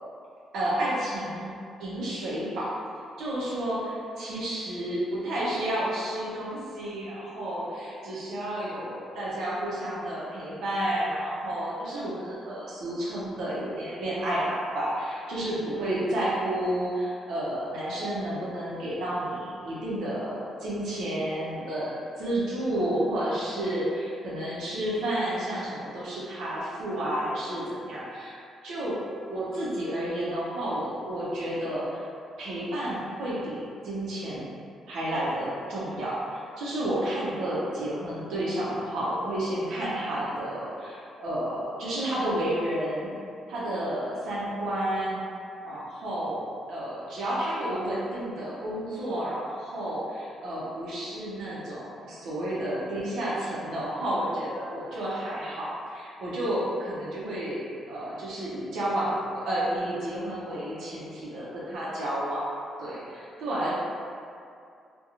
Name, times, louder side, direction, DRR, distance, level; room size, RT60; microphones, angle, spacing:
voice 1, 0.5-1.5 1.8-2.7 3.2-28.4 28.6-29.0 29.3-32.0 32.4-34.5 34.9-43.1 43.5-45.2 45.6-62.5 62.8-63.7, right 1 dB, 80° right, -8 dB, 0.6 m, -31 dB
2.8 x 2.2 x 2.4 m, 2.4 s
cardioid pair, 90°, 0 cm